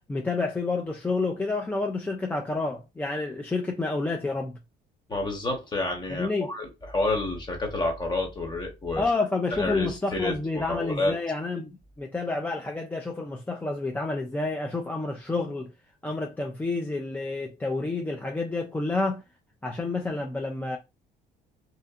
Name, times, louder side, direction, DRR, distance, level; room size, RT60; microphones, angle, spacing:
voice 1, 0.1-4.6 6.1-6.5 9.0-15.7 16.0-19.2 19.6-20.8, left 3 dB, 10° left, 0.3 m, -29 dB
voice 2, 5.1-9.0 9.5-11.1, left 2 dB, 25° left, 1.0 m, -29 dB
2.7 x 2.5 x 2.3 m
cardioid pair, 110°, 17 cm